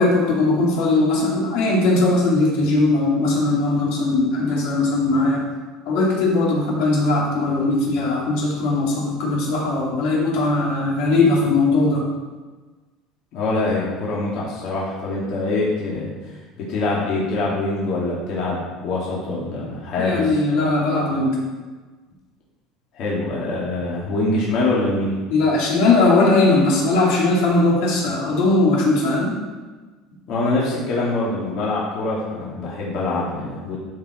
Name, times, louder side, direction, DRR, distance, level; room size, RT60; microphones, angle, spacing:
voice 1, 0.0-5.4 5.9-12.1 20.0-21.4 25.3-29.4, left 2 dB, 70° left, -4 dB, 2.5 m, -19 dB
voice 2, 13.3-20.4 22.9-25.2 30.3-33.8, left 2 dB, 50° left, -5 dB, 2.2 m, -24 dB
12.0 x 4.8 x 4.3 m, 1.3 s
cardioid pair, 160°, 0 cm